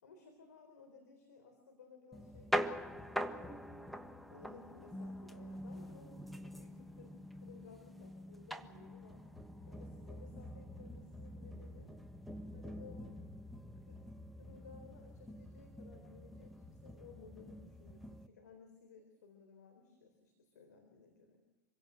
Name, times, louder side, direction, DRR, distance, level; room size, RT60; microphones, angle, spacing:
voice 1, 0.0-3.7 4.3-9.2 9.7-11.9 12.5-13.1 13.8-14.0 14.3-21.4, left 5 dB, 90° left, 5 dB, 3.9 m, -59 dB
sound 1, 2.1-18.3, equal, ahead, 1.4 m, -44 dB
26.5 x 17.0 x 7.8 m, 1.1 s
hypercardioid pair, 105°, 9 cm